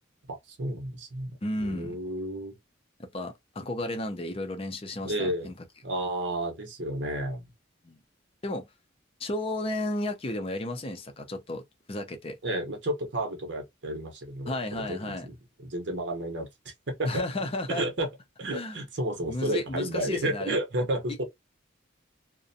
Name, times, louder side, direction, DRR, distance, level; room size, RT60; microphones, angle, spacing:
voice 1, 0.3-2.6 5.0-5.5 5.8-7.5 12.4-16.5 16.9-17.2 17.7-18.1 18.4-21.2, right 1 dB, 60° right, 0.8 m, -32 dB
voice 2, 1.4-2.0 3.0-5.5 7.8-8.0 8.4-8.7 9.2-11.6 11.9-12.4 14.5-15.3 17.1-17.9 18.5-18.8 19.3-20.5, left 1 dB, 30° left, 0.5 m, -33 dB
2.5 x 2.1 x 2.5 m
head